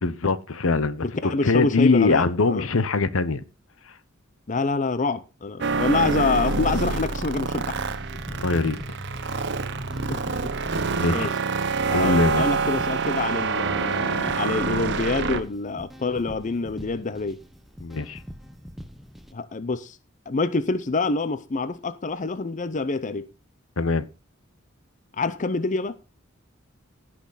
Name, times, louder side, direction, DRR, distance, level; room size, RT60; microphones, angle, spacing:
voice 1, 0.0-1.0 1.4-3.4 8.3-8.8 10.9-11.3 11.9-12.5 17.8-18.2 23.8-24.0, left 3 dB, 80° left, 0.8 m, -22 dB
voice 2, 1.0-2.7 4.5-7.8 8.5-8.6 10.1-10.2 10.7-11.3 11.9-17.4 19.3-20.0 20.3-23.3 25.2-26.0, left 3 dB, 40° left, 0.6 m, -26 dB
sound 1, 5.6-15.4, right 4 dB, 60° right, 0.9 m, -26 dB
sound 2, 6.9-19.3, equal, ahead, 0.8 m, -44 dB
16.5 x 6.1 x 4.0 m
head